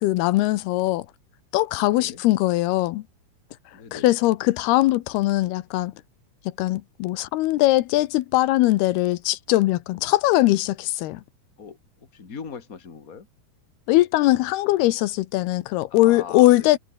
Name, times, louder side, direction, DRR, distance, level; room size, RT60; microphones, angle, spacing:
voice 1, 0.0-1.1 1.5-3.0 3.9-5.9 6.6-11.2 13.9-16.8, left 17 dB, 85° left, 2.8 m, -21 dB
voice 2, 1.8-2.2 3.7-4.2 11.6-13.3 15.9-16.8, left 6 dB, 25° left, 2.5 m, -40 dB
omnidirectional pair, 4.5 m